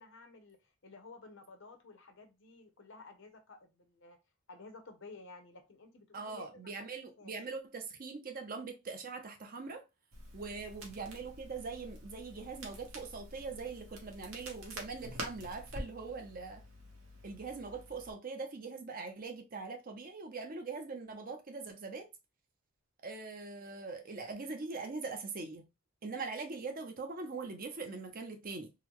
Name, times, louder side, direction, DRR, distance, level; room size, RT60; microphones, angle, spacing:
voice 1, 0.0-4.2 4.5-6.7 7.2-7.4, left 3 dB, 60° left, 0.7 m, -53 dB
voice 2, 6.1-9.8 10.3-16.6 17.2-22.1 23.0-25.7 26.0-28.7, right 4 dB, 40° right, 0.6 m, -42 dB
Crackle, 10.1-18.1, equal, 75° right, 1.1 m, -48 dB
3.8 x 2.1 x 3.0 m
head